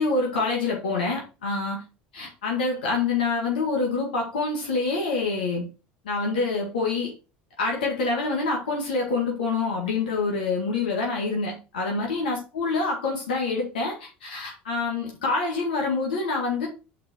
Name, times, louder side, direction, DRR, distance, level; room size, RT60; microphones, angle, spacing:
voice 1, 0.0-1.8 2.1-5.7 6.0-7.1 7.6-16.7, left 3 dB, 90° left, -1 dB, 2.0 m, -26 dB
6.1 x 4.5 x 4.4 m, 0.31 s
hypercardioid pair, 85°, 5 cm